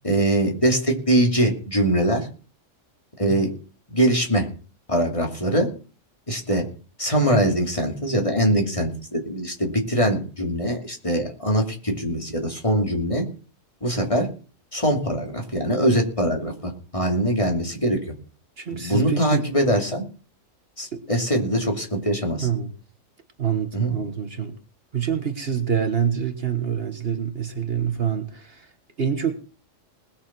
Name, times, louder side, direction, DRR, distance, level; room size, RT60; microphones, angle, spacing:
voice 1, 0.0-2.3 3.2-3.5 3.9-4.5 4.9-5.7 6.3-6.6 7.0-13.2 13.8-14.3 14.7-18.0 18.7-20.0 20.8-22.5 23.7-23.9, right 1 dB, 25° left, 2.9 m, -22 dB
voice 2, 18.6-19.5 20.9-21.0 22.4-22.7 23.4-24.6 24.9-28.7 29.0-29.5, right 8 dB, 50° right, 1.4 m, -26 dB
20.0 x 7.0 x 6.1 m
omnidirectional pair, 1.3 m